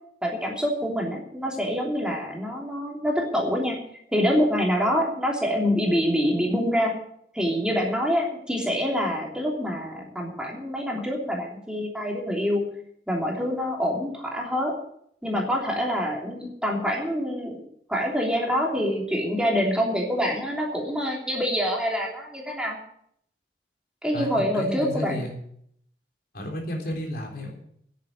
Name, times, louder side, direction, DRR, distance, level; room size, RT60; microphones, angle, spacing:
voice 1, 0.2-3.8 4.1-6.9 7.3-12.6 13.1-14.7 15.2-17.6 17.9-22.8 24.0-25.2, equal, 5° right, -1 dB, 3.1 m, -26 dB
voice 2, 24.1-25.3 26.3-27.6, equal, 60° left, 2 dB, 3.5 m, -32 dB
10.5 x 9.3 x 9.3 m, 0.68 s
head